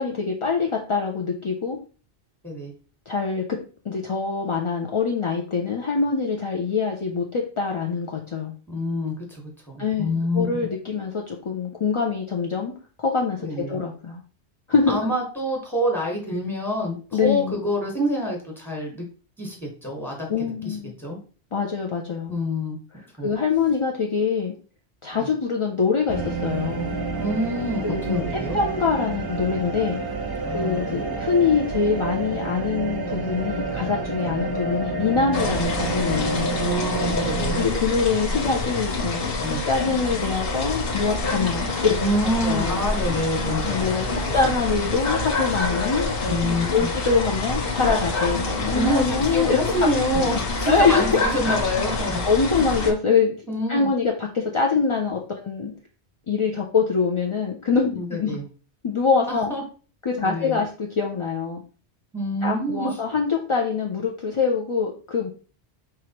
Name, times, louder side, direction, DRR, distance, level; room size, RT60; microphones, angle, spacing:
voice 1, 0.0-1.8 3.1-3.4 3.8-8.5 9.8-12.7 13.0-14.2 14.7-15.0 17.1-17.6 20.3-20.9 21.5-22.3 22.9-24.5 25.0-27.0 27.8-28.2 28.5-30.0 30.5-36.5 37.5-39.3 39.6-42.0 42.4-42.8 43.6-49.9 50.1-51.2 52.3-53.4 53.7-55.7 56.3-58.4 58.8-59.5 60.0-61.6 62.4-65.3, left 5 dB, 40° left, 0 dB, 0.4 m, -24 dB
voice 2, 8.7-10.5 13.4-13.8 14.9-19.0 19.4-21.2 22.3-22.8 23.2-23.3 25.2-25.3 27.2-28.6 30.4-31.2 34.2-34.5 36.5-37.6 39.4-39.6 42.0-44.4 46.3-46.9 48.7-52.2 53.5-53.9 57.9-58.4 59.3-59.6 60.2-60.6 62.1-62.9, left 1 dB, ahead, -1 dB, 1.3 m, -27 dB
sound 1, 26.1-37.7, right 3 dB, 25° right, 0.6 m, -29 dB
sound 2, 35.3-52.9, left 2 dB, 60° left, 1.0 m, -27 dB
4.8 x 3.1 x 2.9 m, 0.38 s
omnidirectional pair, 1.1 m